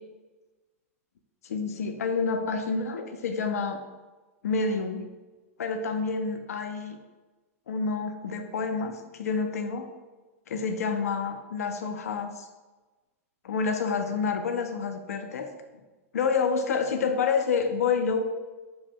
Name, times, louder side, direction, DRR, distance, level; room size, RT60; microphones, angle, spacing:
voice 1, 1.4-3.8 4.4-5.1 5.6-7.0 7.7-9.9 10.5-12.5 13.4-15.5 16.1-18.2, left 5 dB, 85° left, 6 dB, 0.3 m, -28 dB
2.8 x 2.1 x 3.4 m, 1.2 s
hypercardioid pair, 115°, 8 cm